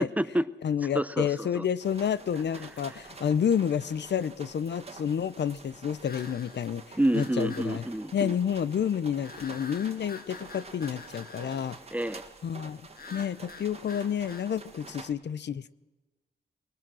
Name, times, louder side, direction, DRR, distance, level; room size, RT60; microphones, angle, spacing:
voice 1, 0.0-0.5 0.9-1.7 7.0-8.3 11.9-12.2, right 1 dB, 10° right, 15 dB, 0.6 m, -28 dB
voice 2, 0.6-7.8 8.1-11.8 12.4-12.8 13.1-15.7, left 8 dB, 75° left, 18 dB, 0.6 m, -29 dB
sound 1, 1.8-15.1, right 4 dB, 35° right, 1.7 m, -48 dB
sound 2, 6.0-6.7 7.2-7.7 9.2-11.8 12.9-14.5, left 4 dB, 55° left, 1.8 m, -47 dB
21.0 x 19.5 x 6.2 m, 1.2 s
wide cardioid pair, 100°, 18 cm